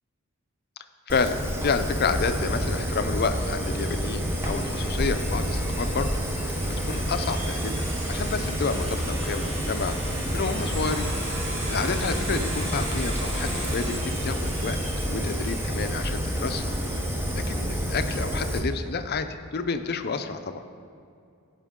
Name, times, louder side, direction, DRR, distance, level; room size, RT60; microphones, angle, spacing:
voice 1, 1.1-1.4 1.6-6.1 6.4-6.5 6.8-10.0 10.3-11.1 11.7-14.0 14.2-14.8 15.1-16.7 17.3-20.6, left 4 dB, 45° left, 8 dB, 0.5 m, -29 dB
Fire, 1.1-18.6, equal, 10° right, 0.8 m, -29 dB
Domestic sounds home sounds, 1.3-18.0, right 1 dB, 55° right, 1.6 m, -39 dB
16.5 x 5.6 x 3.7 m, 2.4 s
head